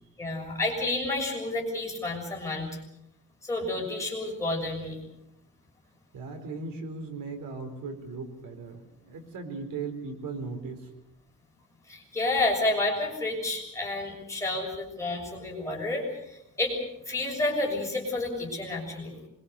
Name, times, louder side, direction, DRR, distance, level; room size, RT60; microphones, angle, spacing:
voice 1, 0.2-2.7 3.4-5.0 11.9-16.7 17.1-19.2, left 2 dB, 10° left, -1 dB, 6.7 m, -30 dB
voice 2, 6.1-10.9, right 4 dB, 85° right, 6 dB, 4.7 m, -38 dB
25.5 x 22.5 x 6.7 m, 0.80 s
wide cardioid pair, 175°, 33 cm